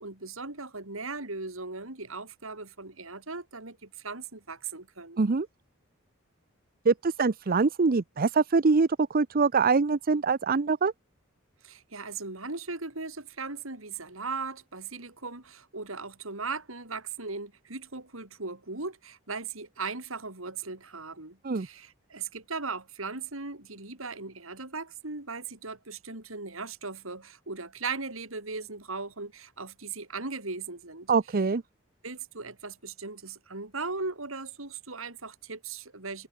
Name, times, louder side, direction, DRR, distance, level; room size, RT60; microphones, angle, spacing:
voice 1, 0.0-5.2 11.6-31.5 32.0-36.3, right 4 dB, 70° right, 3.9 m, -38 dB
voice 2, 6.9-10.9 21.4-21.7 31.1-31.6, right 4 dB, 45° right, 0.6 m, -24 dB
head